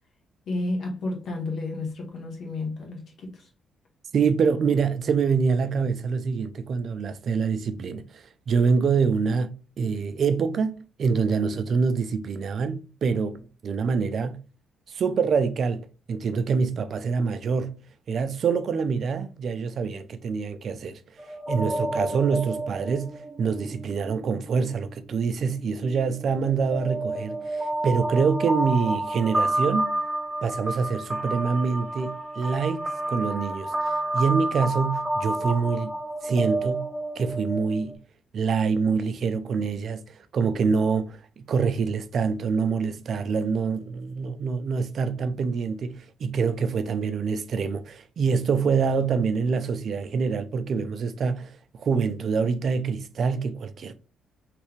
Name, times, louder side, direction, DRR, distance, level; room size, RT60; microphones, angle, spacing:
voice 1, 0.5-3.4, left 2 dB, 65° left, 1.4 m, -31 dB
voice 2, 4.1-14.4 14.9-17.8 18.1-21.0 21.5-29.9 30.4-36.0 36.2-36.9 37.2-38.0 38.3-40.0 40.3-53.9, right 5 dB, 55° right, 0.4 m, -26 dB
sound 1, 21.2-24.8 25.4-37.9, right 1 dB, 15° right, 0.7 m, -30 dB
3.4 x 3.2 x 3.1 m
cardioid pair, 90°, 0 cm